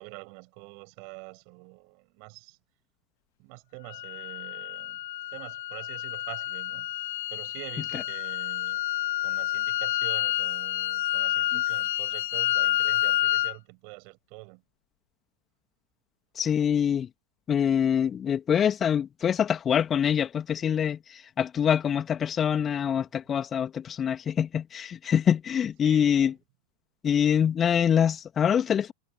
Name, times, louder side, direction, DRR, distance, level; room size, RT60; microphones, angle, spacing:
voice 1, 0.0-2.6 3.4-5.0 5.3-8.8 9.2-14.6 25.8-26.3, right 40 dB or more, 45° right, 7.9 m, -46 dB
sound 1, 3.9-13.5, left 15 dB, 55° left, 2.5 m, -29 dB
voice 2, 16.4-17.1 17.5-26.3 27.0-28.9, left 8 dB, 25° left, 2.4 m, -25 dB
figure-of-eight pair, 90°, 0 cm